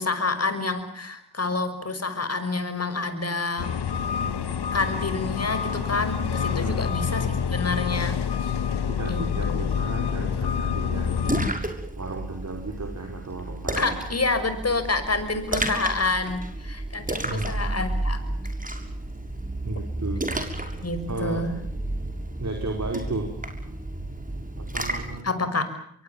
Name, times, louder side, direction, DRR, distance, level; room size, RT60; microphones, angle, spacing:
voice 1, 0.0-3.8 4.7-8.2 9.1-9.6 13.8-18.2 20.8-21.5 25.2-25.7, left 3 dB, 30° left, 10 dB, 6.1 m, -28 dB
sound 1, 3.6-11.5, left 7 dB, 50° left, 2.2 m, -27 dB
voice 2, 4.2-4.5 6.5-6.8 8.9-11.3 12.0-14.0 17.2-17.5 19.6-20.2 21.1-21.5 22.4-23.4 24.4-25.3, right 2 dB, 35° right, 3 dB, 5.3 m, -34 dB
Splash splatter, 10.9-25.2, right 1 dB, 15° right, 6.5 m, -32 dB
26.0 x 23.5 x 7.4 m, 0.69 s
hypercardioid pair, 40°, 49 cm